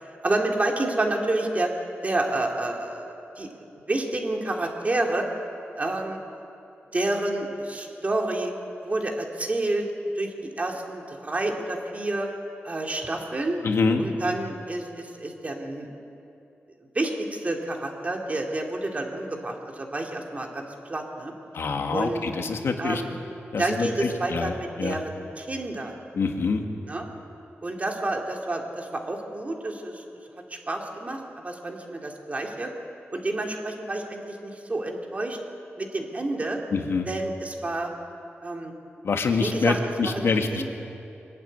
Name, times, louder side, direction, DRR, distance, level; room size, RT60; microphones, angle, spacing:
voice 1, 0.2-1.7 2.0-5.3 5.8-6.2 6.9-8.5 8.8-9.9 10.1-12.3 12.6-13.6 14.0-15.9 16.9-21.3 21.9-22.2 22.8-23.1 23.6-26.0 26.9-27.1 27.6-30.0 30.5-32.7 33.1-35.4 35.8-36.6 37.1-37.9 38.4-38.7 39.4-39.8 40.0-40.6, right 2 dB, 35° right, 1 dB, 2.8 m, -29 dB
voice 2, 13.6-14.0 21.5-23.0 23.5-24.5 24.8-25.0 26.1-26.6 36.7-37.1 39.0-40.6, left 4 dB, 70° left, 4 dB, 1.9 m, -25 dB
24.5 x 11.5 x 9.5 m, 2.7 s
wide cardioid pair, 95°, 4 cm